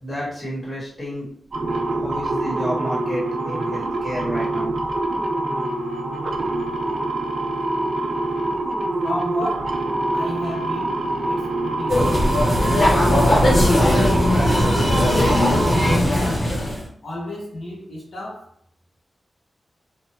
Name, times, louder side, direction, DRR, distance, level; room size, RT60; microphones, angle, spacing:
voice 1, 0.0-1.3 1.9-4.7, equal, 20° left, -6 dB, 1.1 m, -30 dB
sound 1, 1.5-16.0, right 2 dB, 45° right, 0.4 m, -25 dB
voice 2, 9.0-9.8 10.1-12.2 12.9-15.0 15.6-16.5 17.0-18.5, left 1 dB, 70° left, -3 dB, 0.7 m, -32 dB
sound 2, 11.9-16.9, left 1 dB, 45° left, 1.0 m, -18 dB
3.1 x 2.1 x 2.8 m, 0.62 s
wide cardioid pair, 165°, 0 cm